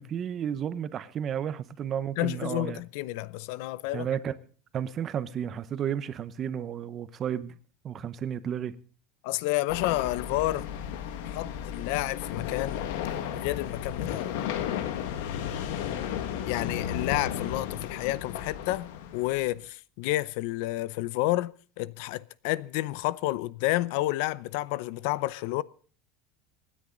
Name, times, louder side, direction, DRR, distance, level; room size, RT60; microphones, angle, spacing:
voice 1, 0.0-2.8 3.9-4.3 4.7-7.5 7.8-8.8, right 9 dB, 30° right, 0.9 m, -32 dB
voice 2, 2.2-4.1 9.2-10.7 11.2-12.9 13.3-14.3 16.5-25.6, left 18 dB, 65° left, 0.6 m, -30 dB
sound 1, 9.7-19.6, left 9 dB, 85° left, 1.8 m, -34 dB
25.5 x 10.0 x 3.8 m
cardioid pair, 165°, 0 cm